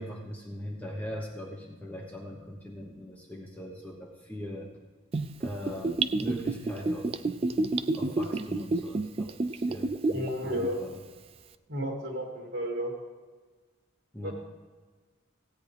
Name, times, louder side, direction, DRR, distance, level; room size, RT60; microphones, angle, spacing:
voice 1, 0.0-4.7 5.4-7.1 7.9-11.0 14.1-14.3, equal, 10° left, -1 dB, 1.1 m, -40 dB
Gurgling / Bathtub (filling or washing), 5.1-10.3 10.6-10.7, right 3 dB, 30° right, 0.3 m, -29 dB
voice 2, 10.1-10.8 11.7-12.9 14.2-14.3, equal, 55° right, -1 dB, 2.6 m, -32 dB
16.0 x 8.9 x 3.4 m, 1.4 s
head